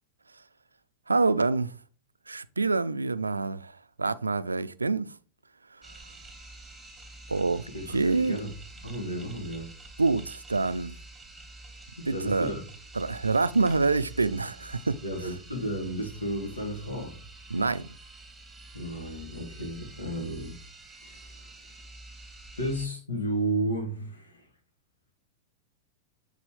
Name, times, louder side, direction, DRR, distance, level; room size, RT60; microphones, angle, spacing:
voice 1, 1.1-1.7 2.3-5.2 7.3-8.4 10.0-10.9 12.1-12.5 12.9-15.0 17.5-17.9, right 3 dB, 90° right, 0.4 m, -26 dB
sound 1, 5.8-22.9, right 2 dB, 10° right, 1.4 m, -48 dB
voice 2, 7.7-8.5 8.8-9.7 12.0-12.6 15.0-17.2 18.7-20.6 21.0-21.5 22.6-24.5, right 1 dB, 90° left, 2.2 m, -33 dB
8.3 x 4.0 x 3.2 m
figure-of-eight pair, 100°, 0 cm